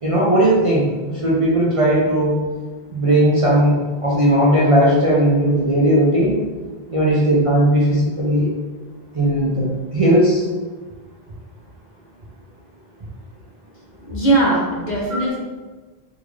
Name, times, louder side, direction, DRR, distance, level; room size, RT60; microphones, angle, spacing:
voice 1, 0.0-2.4 2.9-6.4 6.9-8.5 9.1-10.5, right 1 dB, 40° right, -6 dB, 0.6 m, -17 dB
voice 2, 14.0-15.4, right 2 dB, 50° left, -4 dB, 0.8 m, -19 dB
3.6 x 2.4 x 3.1 m, 1.3 s
omnidirectional pair, 1.0 m